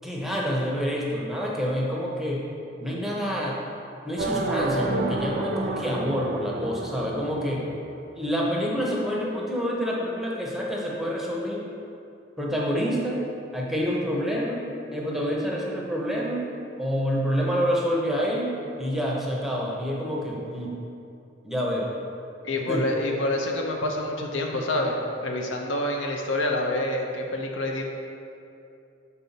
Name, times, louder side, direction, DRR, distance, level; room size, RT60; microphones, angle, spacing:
voice 1, 0.0-2.4 2.8-3.6 4.0-7.6 8.1-11.6 12.4-13.2 13.5-14.6 14.9-16.5 16.8-18.5 18.8-20.7 21.4-21.9 22.5-22.9, equal, ahead, -4 dB, 0.7 m, -27 dB
sound 1, 4.2-8.2, right 2 dB, 45° right, 0.4 m, -30 dB
voice 2, 22.4-27.8, left 1 dB, 80° left, 1 dB, 0.7 m, -27 dB
5.5 x 4.4 x 4.0 m, 2.6 s
head